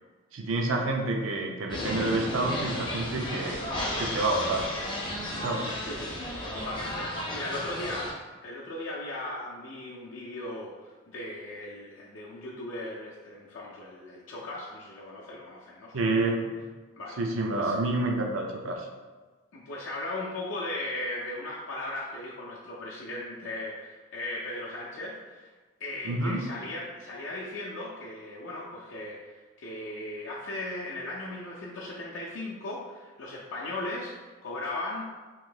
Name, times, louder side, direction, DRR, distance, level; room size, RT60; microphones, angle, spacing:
voice 1, 0.3-3.6 4.0-4.7 5.4-5.7 6.6-6.7 15.9-16.6 17.2-18.9 26.0-26.4, right 2 dB, 80° right, 2 dB, 0.5 m, -28 dB
sound 1, 1.7-8.1, left 1 dB, 25° left, 0.5 m, -33 dB
voice 2, 5.3-6.1 6.5-16.2 17.0-17.2 17.5-17.7 19.5-25.5 25.8-35.0, left 1 dB, 70° left, -6 dB, 0.5 m, -37 dB
3.0 x 2.7 x 3.8 m, 1.3 s
head